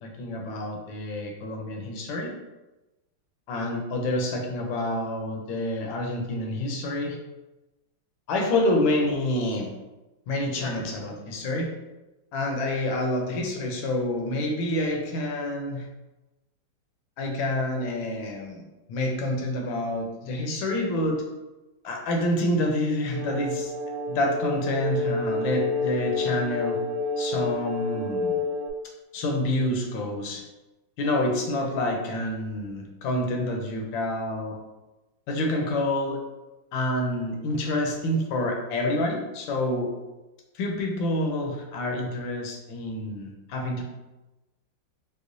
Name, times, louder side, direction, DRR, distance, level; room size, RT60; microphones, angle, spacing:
voice 1, 0.0-2.3 3.5-7.2 8.3-9.7 10.3-11.7 12.3-15.9 17.2-18.6 18.9-21.2 21.8-23.7 24.1-26.8 27.2-28.3 29.1-30.4 31.0-34.6 35.3-36.2 36.7-39.9 40.5-43.8, left 1 dB, 75° left, 1 dB, 1.3 m, -28 dB
sound 1, 23.1-28.7, left 2 dB, 85° right, 1.4 m, -29 dB
4.8 x 2.2 x 2.6 m, 1.1 s
omnidirectional pair, 2.3 m